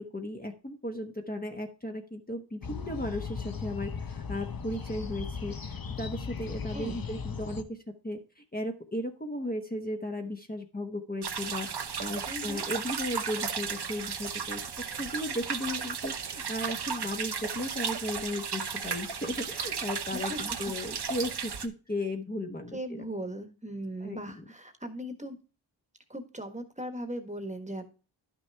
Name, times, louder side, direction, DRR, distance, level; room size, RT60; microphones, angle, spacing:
voice 1, 0.0-7.8 8.0-23.1 24.0-24.2, left 1 dB, 20° left, 4 dB, 1.1 m, -36 dB
sound 1, 2.6-7.6, left 6 dB, 50° left, 0.9 m, -37 dB
voice 2, 6.7-7.0 12.3-12.6 20.1-20.7 22.7-25.4 26.1-27.8, right 1 dB, 15° right, 7 dB, 1.4 m, -38 dB
sound 2, 11.2-21.7, right 6 dB, 60° right, 0.9 m, -35 dB
11.0 x 6.1 x 3.4 m, 0.35 s
wide cardioid pair, 80°, 45 cm